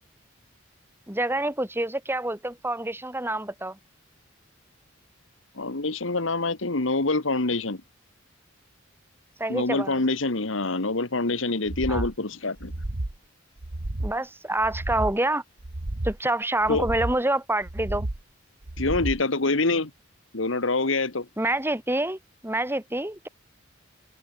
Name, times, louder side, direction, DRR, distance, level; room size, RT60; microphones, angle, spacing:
voice 1, 1.1-3.8 9.4-10.0 11.9-12.1 14.0-15.4 16.0-18.1 21.4-23.3, right 1 dB, 10° right, 3.8 m, -27 dB
voice 2, 5.5-7.8 9.5-12.7 16.7-16.9 18.8-19.9 20.3-21.3, left 3 dB, 70° left, 1.7 m, -26 dB
sound 1, 11.7-12.1 12.6-13.2 13.6-14.2 14.6-15.2 15.6-16.2 16.6-17.2 17.6-18.2 18.6-19.2, right 1 dB, 70° right, 1.6 m, -32 dB
open air
head